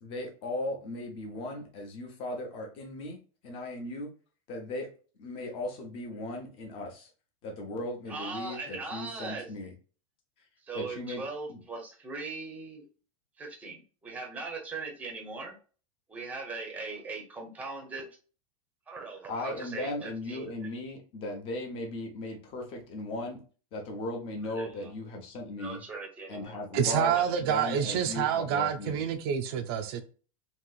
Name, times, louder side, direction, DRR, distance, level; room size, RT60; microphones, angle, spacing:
voice 1, 0.0-3.2 3.4-4.1 4.5-4.9 5.2-7.1 7.4-9.7 10.7-11.2 11.5-11.6 19.3-23.4 23.7-25.8 26.3-27.1 27.4-29.0, left 2 dB, 30° left, 0.9 m, -37 dB
voice 2, 8.1-9.5 10.6-12.9 13.4-15.5 16.1-18.1 18.9-20.7 24.4-24.9 25.6-26.6 26.9-27.6, right 3 dB, 10° right, 0.7 m, -40 dB
voice 3, 26.7-30.0, right 8 dB, 45° right, 0.4 m, -28 dB
3.0 x 2.9 x 2.3 m
supercardioid pair, 160°, 18 cm